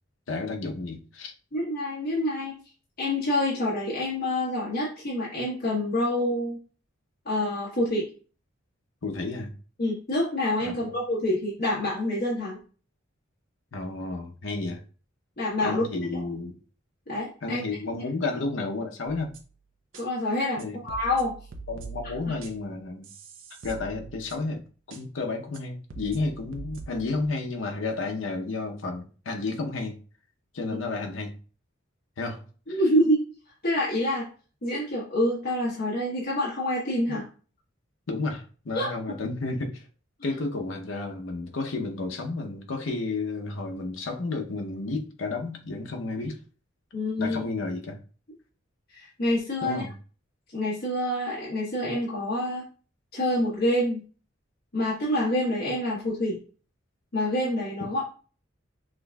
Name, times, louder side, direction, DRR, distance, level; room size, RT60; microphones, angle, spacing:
voice 1, 0.3-1.3 9.0-9.5 10.6-10.9 13.7-14.8 15.6-16.6 17.4-19.3 20.6-20.8 21.7-23.1 23.6-24.6 24.9-30.0 30.5-31.3 32.2-32.4 32.7-32.8 38.1-39.8 40.2-46.4 47.2-48.0 49.6-49.9, left 3 dB, 75° left, 0.7 m, -31 dB
voice 2, 1.5-2.6 3.0-6.6 7.2-8.1 9.8-12.6 15.4-15.8 16.1-16.2 17.1-17.6 19.9-21.3 22.3-22.4 32.7-33.2 33.6-34.3 34.6-37.2 38.7-38.9 46.9-47.4 48.9-49.8 50.5-52.6 53.1-54.0 54.7-56.4 57.1-58.0, left 1 dB, 50° left, 1.2 m, -27 dB
sound 1, 19.1-19.5 19.9-20.0 20.6-22.7 23.0-24.6 24.9-25.0 25.5-25.6 25.9-27.3, right 4 dB, 80° right, 0.6 m, -43 dB
6.0 x 2.6 x 2.3 m
head